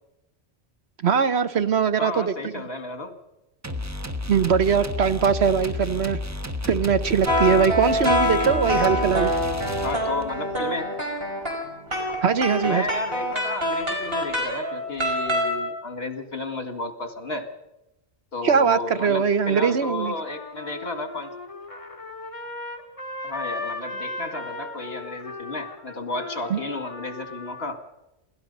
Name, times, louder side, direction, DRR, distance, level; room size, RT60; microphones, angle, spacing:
voice 1, 1.0-2.6 4.3-6.2 6.7-9.3 12.2-12.8 18.4-20.1 26.5-26.6, right 6 dB, 80° right, 12 dB, 1.3 m, -21 dB
voice 2, 2.0-3.2 9.8-10.9 12.6-17.5 18.3-21.3 23.2-27.8, left 2 dB, 70° left, 7 dB, 2.3 m, -33 dB
sound 1, 3.6-10.4, left 1 dB, 15° right, 1.1 m, -32 dB
sound 2, 7.2-15.7, left 1 dB, 65° right, 5.4 m, -25 dB
Trumpet, 20.0-27.7, left 2 dB, 30° left, 1.9 m, -37 dB
27.5 x 18.0 x 5.4 m, 0.93 s
omnidirectional pair, 1.1 m